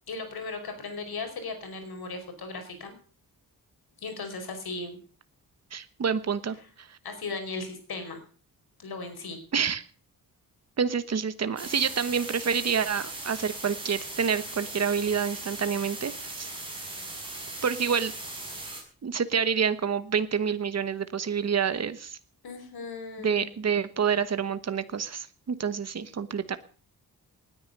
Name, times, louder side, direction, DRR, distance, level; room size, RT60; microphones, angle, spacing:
voice 1, 0.1-2.9 4.0-5.0 7.0-8.2 8.8-9.4 22.4-23.5, left 3 dB, 80° left, 7 dB, 4.9 m, -37 dB
voice 2, 5.7-7.0 9.5-9.8 10.8-16.5 17.6-18.1 19.0-22.2 23.2-26.6, right 6 dB, 45° right, 12 dB, 1.2 m, -28 dB
sound 1, 11.6-18.8, right 2 dB, 15° right, 6.5 m, -39 dB
19.5 x 9.7 x 6.7 m, 0.42 s
wide cardioid pair, 150°, 37 cm